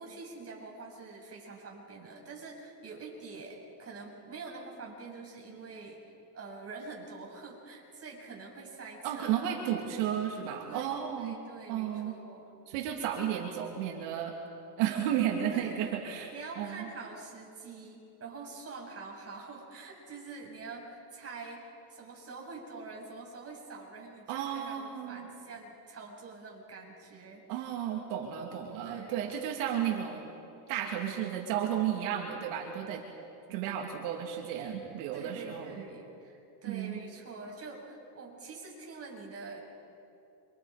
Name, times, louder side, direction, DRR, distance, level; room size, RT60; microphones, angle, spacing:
voice 1, 0.0-6.0 6.3-9.8 10.6-10.9 11.2-12.4 15.5-15.7 16.3-27.4 28.8-29.2 35.1-39.6, right 3 dB, 30° right, -1 dB, 6.9 m, -46 dB
voice 2, 9.0-11.4 11.7-12.2 12.7-14.4 14.8-16.9 24.3-25.3 27.5-30.3 30.7-33.0 33.5-35.8 36.6-37.0, right 9 dB, 80° right, 0 dB, 2.7 m, -33 dB
29.0 x 26.0 x 5.1 m, 2.7 s
supercardioid pair, 115°, 47 cm